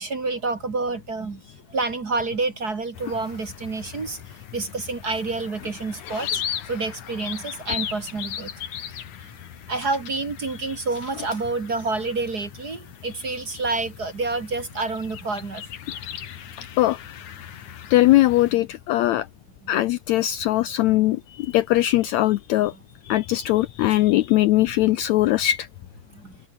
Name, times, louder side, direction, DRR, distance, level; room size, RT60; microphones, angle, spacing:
voice 1, 0.0-1.4 1.7-4.2 4.5-8.5 9.7-15.6 22.7-22.8 24.8-25.0 26.1-26.3, right 3 dB, 35° right, 2.1 m, -28 dB
sound 1, 2.9-18.5, left 9 dB, 65° left, 3.3 m, -38 dB
voice 2, 16.6-17.0 17.9-19.3 19.7-22.7 23.1-25.7, left 15 dB, 80° left, 1.7 m, -20 dB
omnidirectional pair, 3.8 m